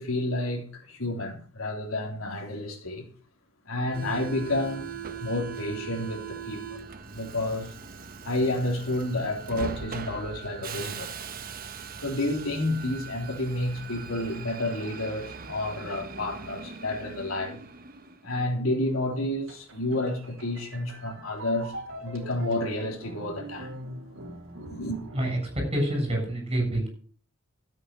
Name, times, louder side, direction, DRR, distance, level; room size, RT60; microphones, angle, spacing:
voice 1, 0.0-3.1 3.7-4.9 5.2-6.8 7.1-7.7 8.2-11.1 12.0-17.6 18.2-21.7 22.0-23.8 24.7-25.0, left 1 dB, 85° left, 3.6 m, -30 dB
Subway metro underground, 3.9-18.3, right 5 dB, 45° right, 1.1 m, -40 dB
sound 1, 19.5-26.2, right 1 dB, 70° right, 3.1 m, -42 dB
voice 2, 25.1-26.9, right 1 dB, 30° right, 7.6 m, -27 dB
13.0 x 8.9 x 6.5 m
head